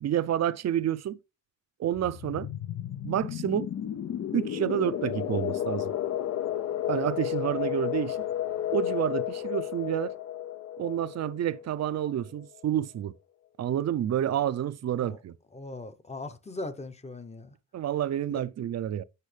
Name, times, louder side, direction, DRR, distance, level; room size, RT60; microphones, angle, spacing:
voice 1, 0.0-1.2 1.8-2.5 3.0-3.7 4.3-5.9 6.9-8.2 8.7-10.1 10.8-13.1 13.6-15.3 17.7-19.0, right 11 dB, 55° right, 0.5 m, -29 dB
sound 1, 1.9-12.4, left 11 dB, 55° left, 0.5 m, -32 dB
voice 2, 15.5-17.5 18.3-18.4, left 2 dB, 20° left, 0.8 m, -39 dB
8.2 x 6.3 x 3.3 m
cardioid pair, 120°, 31 cm